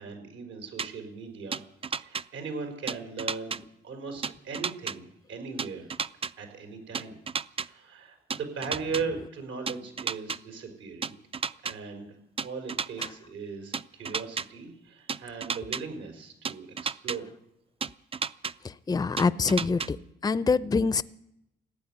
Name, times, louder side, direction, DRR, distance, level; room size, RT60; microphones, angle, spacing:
voice 1, 0.0-1.6 2.0-5.9 6.4-7.2 7.7-11.2 11.6-17.3, right 5 dB, 75° right, 5 dB, 4.7 m, -38 dB
sound 1, 0.8-0.9 1.5-2.2 2.9-3.6 4.2-4.9 5.6-6.3 6.9-7.7 8.3-9.0 9.7-10.4 11.0-11.7 12.4-13.1 13.7-14.4 15.1-15.8 16.4-17.2 17.8-18.5 19.2-19.9, right 5 dB, 30° right, 0.5 m, -31 dB
voice 2, 18.6-20.0 20.2-21.0, left 4 dB, 20° left, 16 dB, 0.6 m, -25 dB
15.5 x 9.5 x 9.7 m, 0.83 s
cardioid pair, 90°, 20 cm